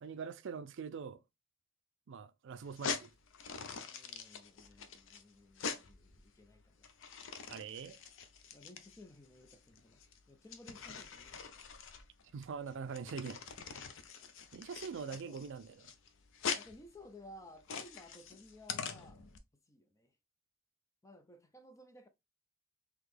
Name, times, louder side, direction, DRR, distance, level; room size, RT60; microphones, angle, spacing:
voice 1, 0.0-1.2 2.1-3.1 7.5-8.0 12.3-13.4 14.5-15.7, right 6 dB, 60° right, 0.4 m, -43 dB
sound 1, 2.6-19.4, left 6 dB, 65° left, 0.6 m, -44 dB
voice 2, 3.8-7.0 8.5-11.7 15.1-15.4 16.5-19.3 19.7-20.2 21.0-22.1, left 1 dB, 15° left, 0.5 m, -57 dB
3.9 x 3.0 x 3.2 m
head